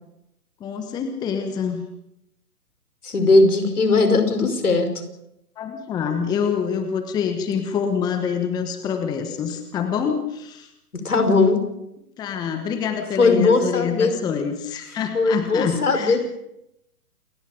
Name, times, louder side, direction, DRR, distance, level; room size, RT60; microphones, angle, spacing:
voice 1, 0.6-1.8 5.6-10.7 12.2-16.2, left 7 dB, 10° left, 7 dB, 1.1 m, -26 dB
voice 2, 3.0-4.9 11.0-11.6 13.2-14.1 15.1-16.2, left 3 dB, 70° left, 7 dB, 5.5 m, -18 dB
28.5 x 20.5 x 5.2 m, 0.83 s
figure-of-eight pair, 135°, 46 cm